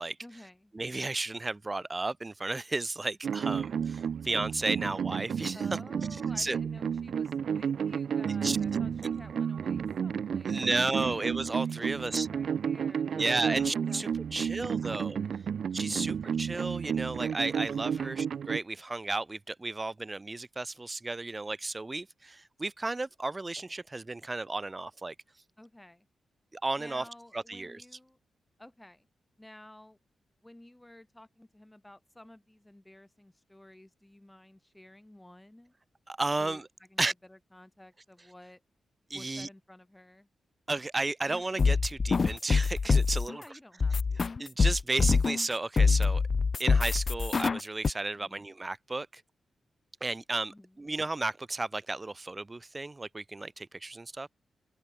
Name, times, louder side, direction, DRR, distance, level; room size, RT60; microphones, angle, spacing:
voice 1, 0.2-0.7 5.5-11.2 11.8-13.6 13.9-15.5 15.9-16.3 17.9-18.2 25.6-26.1 26.8-28.2 28.6-29.1 29.4-30.0 30.4-35.7 36.4-38.6 39.1-40.3 43.2-44.3 48.1-48.4 50.5-50.8, left 1 dB, 10° left, 4.0 m, -53 dB
voice 2, 0.7-5.6 6.4-6.6 8.4-8.8 10.5-12.3 13.1-15.2 15.7-25.1 26.5-27.0 27.3-27.8 36.1-36.7 37.0-37.1 39.1-39.5 40.7-43.4 44.4-46.2 46.6-49.2 50.0-54.3, right 2 dB, 20° right, 2.9 m, -33 dB
sound 1, 3.2-18.6, right 7 dB, 65° right, 1.5 m, -32 dB
sound 2, 41.3-43.3 43.8-45.5 45.8-47.9, left 4 dB, 40° left, 0.6 m, -25 dB
wide cardioid pair, 125°, 0 cm